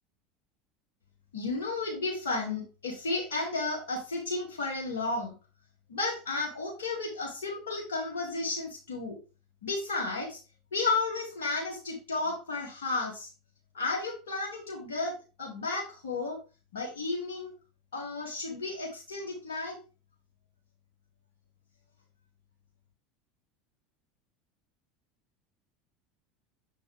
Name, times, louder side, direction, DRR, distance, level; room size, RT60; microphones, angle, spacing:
voice 1, 1.3-5.3 5.9-9.2 9.6-10.4 10.7-13.3 13.7-16.4 16.7-17.5 17.9-19.8, left 3 dB, 80° left, -2 dB, 2.1 m, -33 dB
6.9 x 5.2 x 3.3 m, 0.32 s
hypercardioid pair, 80°, 0 cm